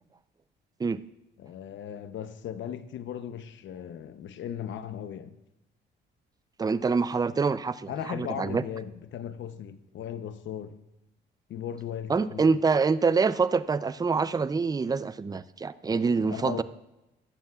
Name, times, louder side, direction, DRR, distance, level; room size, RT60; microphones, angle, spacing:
voice 1, 1.4-5.4 7.9-10.8 11.5-12.5 16.3-16.6, left 9 dB, 70° left, 0.8 m, -37 dB
voice 2, 6.6-8.6 12.1-16.6, right 4 dB, 20° right, 0.4 m, -26 dB
15.5 x 11.5 x 2.4 m
cardioid pair, 90°, 20 cm